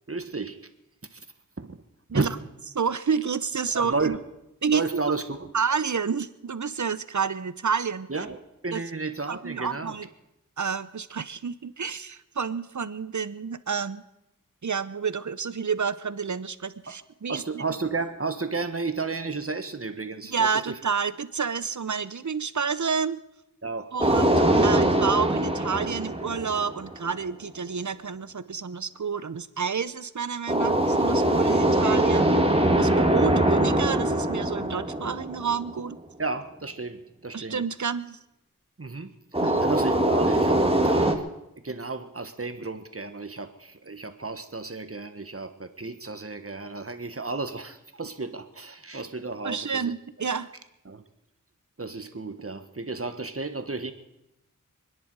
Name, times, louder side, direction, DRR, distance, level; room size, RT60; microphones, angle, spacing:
voice 1, 0.1-0.6 1.1-1.3 1.6-1.8 2.1-2.3 3.7-4.2 4.7-5.5 8.1-8.4 8.6-10.0 16.9-17.0 17.3-20.8 23.6-23.9 24.5-24.8 32.1-32.4 32.9-33.1 36.2-37.6 38.8-39.1 39.6-41.2 41.6-49.9 50.8-51.0 51.8-53.9, right 3 dB, 45° right, 9 dB, 1.5 m, -32 dB
voice 2, 2.7-4.2 4.6-4.8 5.5-8.1 8.7-8.8 9.3-10.1 10.6-14.0 14.6-17.4 20.3-23.2 23.9-32.3 32.8-36.0 37.3-38.2 39.4-39.6 49.4-50.5, right 6 dB, 60° right, 15 dB, 0.8 m, -29 dB
sound 1, 24.0-27.1 30.5-35.9 39.3-41.1, right 1 dB, 15° right, 1.9 m, -22 dB
27.5 x 10.5 x 4.8 m, 0.89 s
wide cardioid pair, 40°, 33 cm